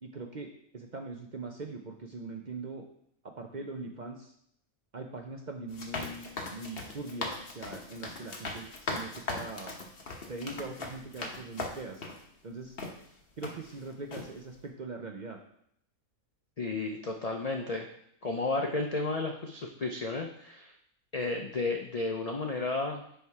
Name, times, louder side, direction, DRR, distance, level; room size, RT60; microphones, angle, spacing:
voice 1, 0.0-2.8 3.2-4.3 4.9-9.8 10.3-12.1 12.4-12.8 13.4-15.4, right 3 dB, 50° right, 2 dB, 0.5 m, -41 dB
sound 1, 5.7-12.2 12.8-12.9 13.4-13.8 14.1-14.3, left 3 dB, 45° left, 1.1 m, -39 dB
voice 2, 16.6-17.9 18.2-20.7 21.1-23.0, left 3 dB, 85° left, 2 dB, 0.3 m, -32 dB
9.7 x 3.5 x 4.7 m, 0.70 s
omnidirectional pair, 1.5 m